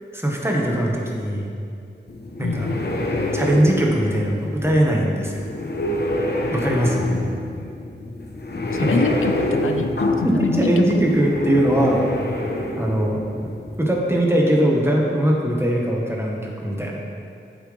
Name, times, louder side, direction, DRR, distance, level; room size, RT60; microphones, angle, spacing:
voice 1, 0.1-1.5 2.4-2.7 3.3-5.4 6.5-7.0 8.8-9.0 10.2-12.0 12.8-13.2 13.8-17.0, right 1 dB, 10° right, -2 dB, 1.4 m, -20 dB
sound 1, 2.1-13.9, left 1 dB, 55° left, 1.0 m, -26 dB
voice 2, 2.4-2.9 6.8-7.1 8.7-11.0, left 5 dB, 85° left, 6 dB, 0.5 m, -26 dB
9.2 x 7.7 x 3.4 m, 2.5 s
wide cardioid pair, 60°, 21 cm